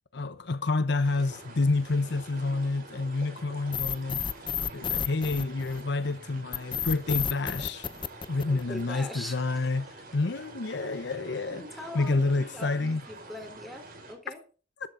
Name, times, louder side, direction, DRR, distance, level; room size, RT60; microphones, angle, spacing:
voice 1, 0.1-4.2 4.7-7.9 8.3-11.6 11.9-13.0, left 3 dB, 65° left, 0.8 m, -28 dB
sound 1, 1.0-14.1, right 2 dB, 50° right, 5.5 m, -47 dB
sound 2, 3.7-6.0 6.5-9.0, left 8 dB, 25° left, 0.5 m, -31 dB
voice 2, 8.5-9.5 11.5-14.4, left 1 dB, ahead, 3.8 m, -42 dB
13.5 x 11.5 x 3.9 m
head